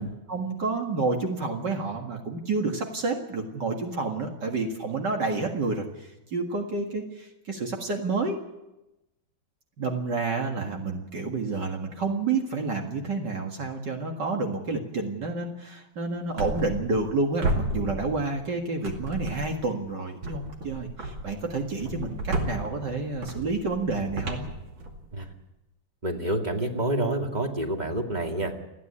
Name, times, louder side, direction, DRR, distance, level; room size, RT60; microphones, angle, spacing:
voice 1, 0.0-8.4 9.8-24.4, right 3 dB, 60° right, 2 dB, 2.5 m, -29 dB
sound 1, 16.4-17.1 17.4-18.5 18.8-19.7 20.2-25.3, right 1 dB, 75° right, 3.2 m, -33 dB
voice 2, 26.0-28.5, right 1 dB, 20° right, 3 dB, 2.3 m, -28 dB
29.5 x 9.9 x 9.9 m, 0.96 s
omnidirectional pair, 2.2 m